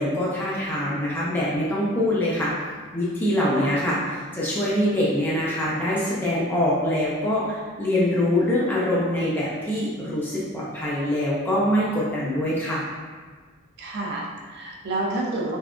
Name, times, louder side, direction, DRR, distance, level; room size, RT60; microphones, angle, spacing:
voice 1, 0.0-2.5 2.9-12.8, left 1 dB, 10° left, -8 dB, 0.5 m, -24 dB
voice 2, 13.8-15.6, right 2 dB, 50° right, -2 dB, 0.5 m, -29 dB
3.5 x 3.3 x 2.5 m, 1.5 s
head